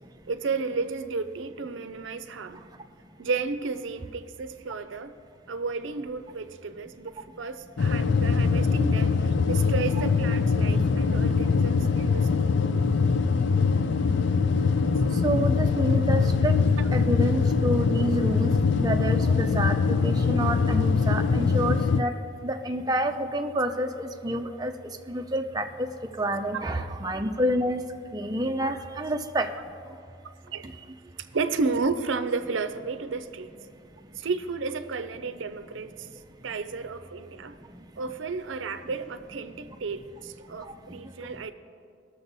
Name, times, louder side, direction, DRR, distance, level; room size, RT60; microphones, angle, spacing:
voice 1, 0.3-2.7 3.2-5.2 5.5-12.4 16.8-16.9 26.5-26.6 28.6-28.7 30.5-30.7 31.3-33.5 34.2-36.1 36.4-37.6 38.0-41.5, right 4 dB, 75° right, 0.6 m, -32 dB
sound 1, 7.8-22.0, left 5 dB, 65° left, 0.4 m, -23 dB
voice 2, 15.2-16.6 16.9-18.5 18.8-22.1 22.4-24.7 25.1-25.9 26.2-27.8 28.1-29.5, right 1 dB, 20° right, 0.5 m, -28 dB
19.0 x 6.9 x 4.0 m
head